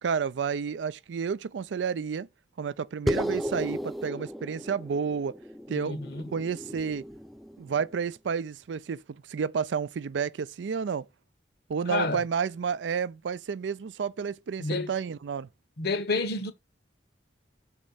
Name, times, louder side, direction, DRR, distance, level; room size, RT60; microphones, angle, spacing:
voice 1, 0.0-2.3 2.6-5.4 5.7-7.0 7.6-11.1 11.7-15.5, right 6 dB, 85° right, 0.4 m, -31 dB
sound 1, 3.1-7.8, equal, ahead, 0.4 m, -34 dB
voice 2, 5.7-6.2 11.9-12.2 14.6-14.9 15.8-16.5, left 3 dB, 65° left, 1.0 m, -29 dB
6.3 x 4.4 x 5.5 m
head